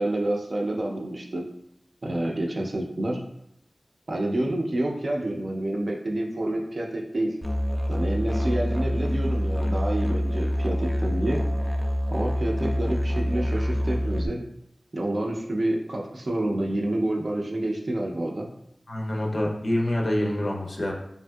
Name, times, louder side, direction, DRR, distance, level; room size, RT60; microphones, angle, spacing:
voice 1, 0.0-1.5 2.0-3.2 4.1-7.4 7.9-11.5 12.1-14.4 14.9-18.5, right 1 dB, 55° right, 0 dB, 0.5 m, -28 dB
Musical instrument, 7.4-14.3, equal, 5° left, 0.4 m, -26 dB
voice 2, 18.9-20.9, left 1 dB, 55° left, 0 dB, 0.6 m, -26 dB
3.3 x 2.6 x 2.2 m, 0.76 s
wide cardioid pair, 65°, 0 cm